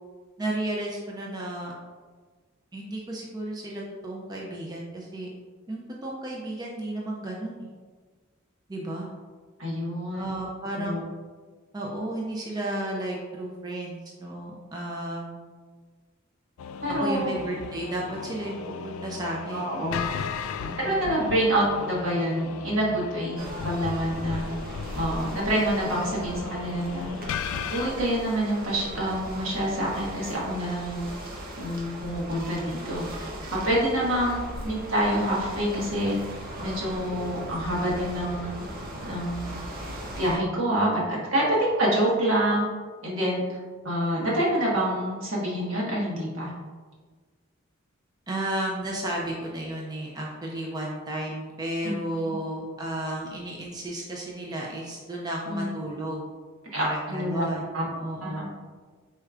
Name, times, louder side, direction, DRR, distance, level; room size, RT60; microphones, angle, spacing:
voice 1, 0.4-1.7 2.7-5.3 5.7-7.7 8.7-9.1 10.2-11.1 11.7-15.4 17.0-19.7 20.6-21.0 48.3-56.2 56.7-58.4, right 1 dB, 20° right, -3 dB, 0.5 m, -33 dB
voice 2, 9.6-10.3 10.7-11.0 16.8-17.3 19.5-20.1 20.8-23.4 23.6-24.5 24.9-27.1 27.7-31.1 31.6-36.2 36.6-38.6 39.0-39.6 40.2-42.6 43.0-43.6 43.8-46.5 51.8-51.9 52.2-52.3 55.4-55.7 56.7-57.4 57.7-57.8 58.2-58.5, right 1 dB, 75° right, -5 dB, 1.4 m, -27 dB
sound 1, 16.6-27.9, left 6 dB, 85° left, 0.3 m, -36 dB
sound 2, 23.4-40.4, equal, 45° right, 0.8 m, -38 dB
4.5 x 4.3 x 2.4 m, 1.4 s
head